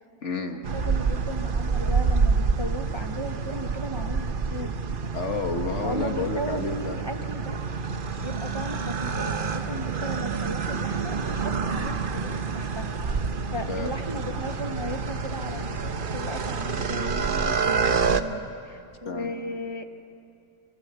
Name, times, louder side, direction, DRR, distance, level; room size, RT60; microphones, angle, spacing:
voice 1, 0.2-0.6 5.1-7.0 13.7-13.9 19.0-19.3, left 3 dB, 70° left, 5 dB, 2.0 m, -30 dB
sound 1, 0.6-18.2, right 5 dB, 50° right, 1.1 m, -28 dB
voice 2, 0.7-4.7 5.8-7.6 8.2-12.9 13.5-19.8, equal, 25° right, 5 dB, 1.2 m, -36 dB
27.5 x 25.5 x 8.3 m, 2.6 s
omnidirectional pair, 1.2 m